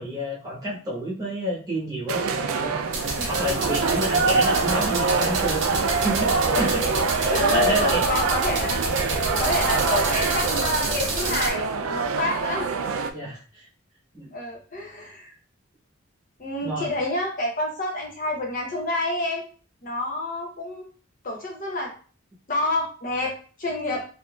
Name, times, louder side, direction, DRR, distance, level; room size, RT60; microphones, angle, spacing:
voice 1, 0.0-2.7 3.3-6.8 7.5-8.0 13.1-13.7 14.1-14.3 16.6-16.9, equal, 20° right, -5 dB, 1.0 m, -29 dB
sound 1, 2.1-13.1, right 4 dB, 80° right, 0.4 m, -25 dB
sound 2, 2.9-11.5, right 3 dB, 60° right, 0.8 m, -29 dB
voice 2, 7.2-8.7 9.4-12.7 14.3-15.3 16.4-19.4 19.8-20.9 21.2-21.9 22.5-24.0, left 2 dB, 40° left, 0 dB, 0.7 m, -28 dB
3.5 x 2.6 x 2.3 m, 0.39 s
head